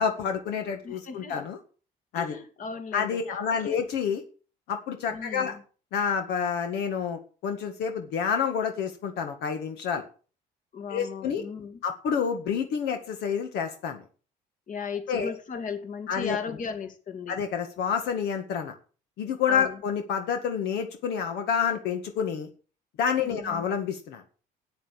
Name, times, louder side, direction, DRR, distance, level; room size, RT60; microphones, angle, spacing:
voice 1, 0.0-1.6 2.1-2.4 2.9-4.2 4.7-5.6 5.9-10.0 10.9-11.4 11.8-14.0 15.1-15.3 16.1-16.4 17.3-18.7 19.2-22.5 23.0-24.2, left 7 dB, 80° left, 1.8 m, -28 dB
voice 2, 0.8-1.4 2.1-3.2 3.6-3.8 5.1-5.6 10.7-11.8 14.7-17.4 19.5-19.8 23.2-23.6, left 6 dB, 50° left, 2.4 m, -36 dB
9.2 x 8.8 x 8.8 m
cardioid pair, 110°, 17 cm